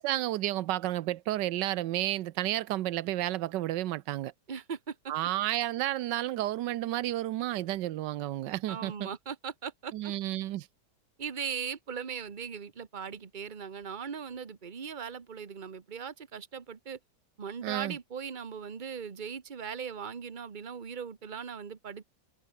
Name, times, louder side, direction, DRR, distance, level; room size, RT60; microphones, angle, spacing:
voice 1, 0.0-4.3 5.1-9.1 9.9-10.7 17.6-18.0, right 14 dB, 85° right, 1.3 m, -31 dB
voice 2, 4.5-5.1 8.7-10.1 11.2-17.0 17.4-22.1, right 6 dB, 30° right, 1.3 m, -39 dB
omnidirectional pair, 1.8 m